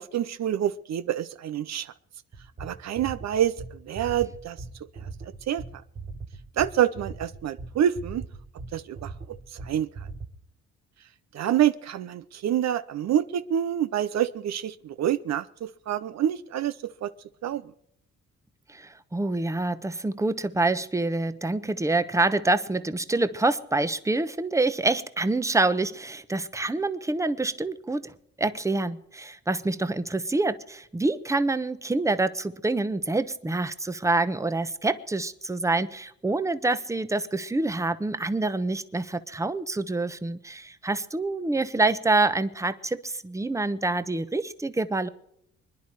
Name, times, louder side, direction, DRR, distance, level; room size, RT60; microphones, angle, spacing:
voice 1, 0.0-1.9 2.6-4.6 5.5-5.6 6.6-8.2 8.7-9.1 9.6-9.9 11.3-16.8 17.0-17.1 17.4-17.6, right 10 dB, 60° right, 0.7 m, -27 dB
sound 1, 2.3-10.3, right 4 dB, 30° right, 1.6 m, -40 dB
voice 2, 18.7-28.1 28.4-45.1, right 2 dB, 10° right, 0.9 m, -26 dB
25.0 x 10.5 x 4.8 m
cardioid pair, 90°, 30 cm